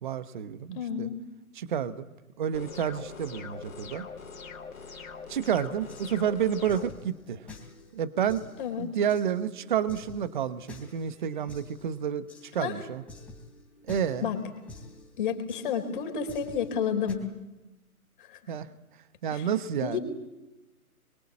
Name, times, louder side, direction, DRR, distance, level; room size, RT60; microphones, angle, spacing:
voice 1, 0.0-1.1 1.5-2.1 2.4-4.1 5.3-7.5 7.9-8.5 8.8-13.0 13.9-14.3 18.5-18.7 19.2-20.0, right 8 dB, 30° right, 14 dB, 1.1 m, -30 dB
voice 2, 0.7-1.2 8.6-8.9 12.6-12.7 14.2-14.4 15.2-17.3 18.2-18.4 19.3-19.5 19.8-20.0, left 7 dB, 35° left, 6 dB, 4.4 m, -30 dB
sound 1, 2.5-6.9, left 5 dB, 60° left, 3.5 m, -43 dB
sound 2, 5.6-17.1, left 2 dB, 5° left, 3.4 m, -50 dB
26.5 x 23.5 x 8.7 m, 1.0 s
figure-of-eight pair, 145°, 45 cm